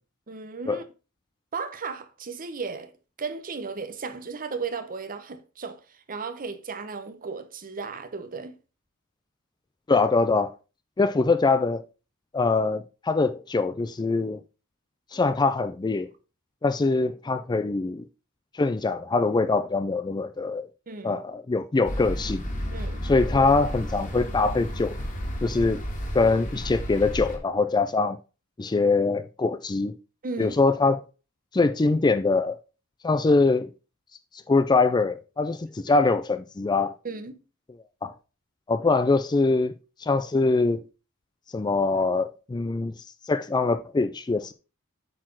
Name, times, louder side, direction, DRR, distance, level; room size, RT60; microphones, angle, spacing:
voice 1, 0.3-0.8 1.5-2.9 3.2-5.8 6.1-8.5 20.9-21.2 22.7-23.1 30.2-30.6 35.9-36.0 37.0-37.4, right 4 dB, 40° right, 0.9 m, -35 dB
voice 2, 9.9-10.5 11.0-11.8 12.3-14.4 15.1-16.1 16.6-18.0 18.5-20.6 21.0-22.4 23.0-25.0 25.4-25.8 26.1-28.2 28.6-29.9 30.4-31.0 31.5-32.6 33.0-33.7 34.5-36.9 38.0-38.1 38.7-39.7 40.0-40.8 41.5-42.9 43.2-44.5, left 3 dB, 20° left, 0.4 m, -23 dB
sound 1, 21.8-27.4, equal, 40° left, 2.0 m, -32 dB
8.6 x 4.2 x 4.5 m
head